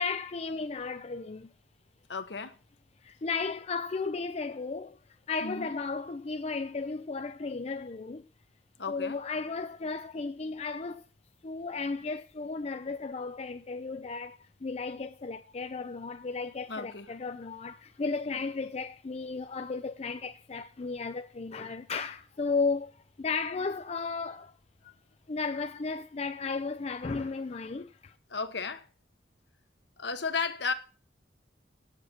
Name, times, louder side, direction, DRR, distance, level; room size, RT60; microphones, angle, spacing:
voice 1, 0.0-1.5 3.0-5.0 5.3-8.3 8.9-11.1 11.4-24.5 24.8-24.9 25.3-28.1, left 4 dB, 35° left, 0.4 m, -34 dB
voice 2, 2.1-2.6 5.4-5.8 8.8-9.2 16.7-17.1 28.3-28.9 30.0-30.7, left 4 dB, 65° left, 1.1 m, -34 dB
8.5 x 7.3 x 7.2 m
head